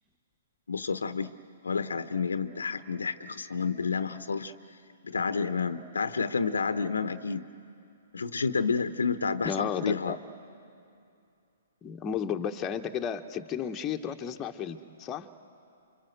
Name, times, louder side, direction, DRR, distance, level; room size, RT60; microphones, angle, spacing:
voice 1, 0.7-1.3 1.6-4.5 5.0-7.5 8.1-10.2, left 5 dB, 75° left, 12 dB, 0.9 m, -30 dB
voice 2, 9.4-10.2 11.8-15.3, left 8 dB, 20° left, 4 dB, 1.2 m, -33 dB
28.5 x 25.0 x 8.0 m, 2.5 s
figure-of-eight pair, 120°, 0 cm